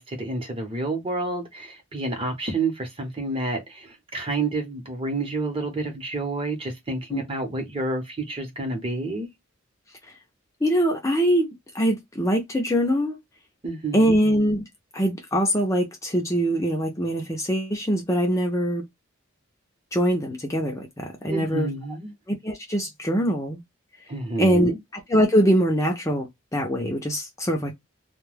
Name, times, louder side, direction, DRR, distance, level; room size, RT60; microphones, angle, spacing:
voice 1, 0.0-9.3 13.6-14.2 21.3-22.1 24.1-24.8, right 3 dB, 25° right, 0.8 m, -29 dB
voice 2, 10.6-11.5 11.7-13.2 13.9-14.6 14.9-18.8 19.9-21.7 22.3-23.6 24.4-24.7 25.1-27.7, equal, 15° left, 0.5 m, -23 dB
2.2 x 2.2 x 3.2 m
head